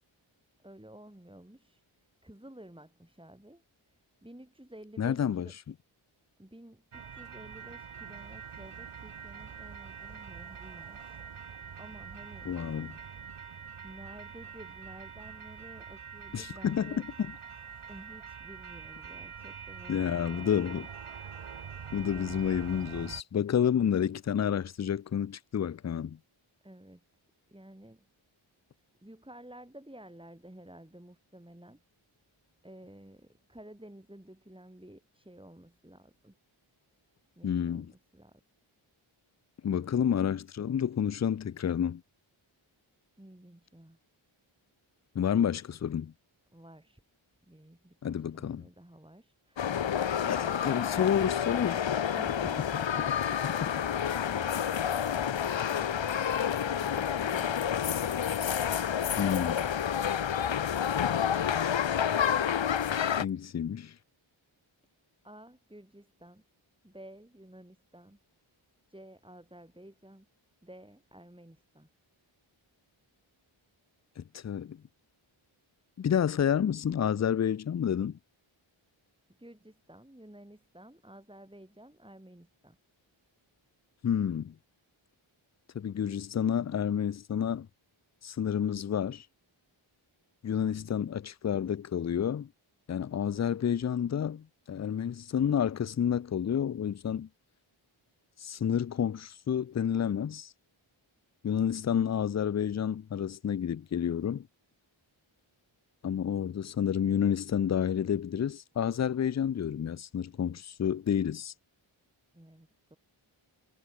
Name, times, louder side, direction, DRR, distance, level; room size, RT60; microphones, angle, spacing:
voice 1, 0.6-1.8 2.2-5.6 6.4-12.5 13.8-17.0 17.9-20.9 26.6-27.0 27.5-28.1 29.0-31.8 32.6-36.4 37.4-38.4 43.2-44.0 46.5-47.0 47.5-50.8 51.5-53.1 53.6-57.7 65.2-66.4 66.8-68.2 68.9-70.3 70.6-71.9 79.4-82.8 90.5-90.9 112.3-113.0, right 1 dB, 10° right, 7.1 m, -52 dB
voice 2, 5.0-5.5 12.5-13.0 16.3-17.0 19.9-20.9 21.9-26.2 37.4-37.9 39.6-42.0 45.2-46.1 48.0-48.6 50.3-51.9 53.4-53.8 59.2-59.7 63.2-63.9 74.2-74.8 76.0-78.2 84.0-84.5 85.7-87.7 88.2-89.3 90.4-92.5 92.9-97.3 98.4-100.5 101.4-104.5 106.0-111.5, left 8 dB, 35° left, 0.4 m, -30 dB
sound 1, 6.9-23.2, right 7 dB, 80° right, 1.6 m, -45 dB
sound 2, 49.6-63.3, left 8 dB, 60° left, 0.8 m, -29 dB
wide cardioid pair, 65°, 50 cm